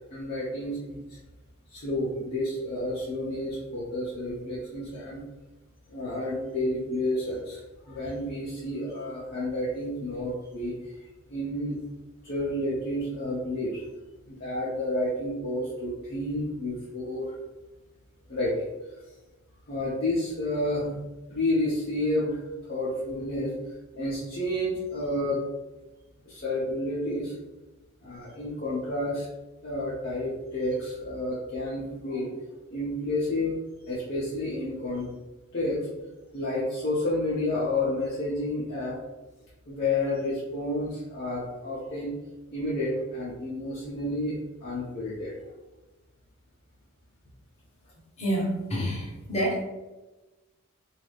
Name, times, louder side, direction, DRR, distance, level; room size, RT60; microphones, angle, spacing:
voice 1, 0.1-1.2 1.7-5.2 5.9-10.9 11.3-11.8 12.2-13.8 14.3-17.3 18.3-18.7 19.7-21.0 21.3-22.4 22.7-23.5 23.9-25.4 26.3-27.3 28.0-29.3 29.6-32.3 32.7-33.6 33.9-35.1 35.5-35.9 36.3-39.0 39.7-42.1 42.5-45.4, left 1 dB, 45° left, -8 dB, 0.6 m, -30 dB
voice 2, 48.2-49.6, right 1 dB, 30° left, -6 dB, 1.0 m, -28 dB
2.7 x 2.4 x 3.3 m, 1.1 s
head